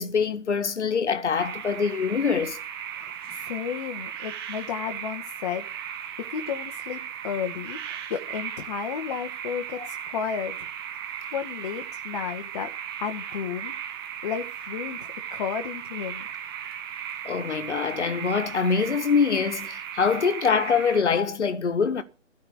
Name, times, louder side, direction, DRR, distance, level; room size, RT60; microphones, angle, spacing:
voice 1, 0.0-2.6 17.3-22.0, left 5 dB, 60° left, 1.8 m, -24 dB
sound 1, 1.4-21.0, right 9 dB, 20° right, 0.9 m, -37 dB
voice 2, 3.0-5.7 6.2-10.7 11.3-12.7 13.0-13.7 14.2-15.0 15.3-16.3, left 7 dB, 30° left, 1.5 m, -33 dB
14.5 x 5.6 x 9.6 m
figure-of-eight pair, 145°, 38 cm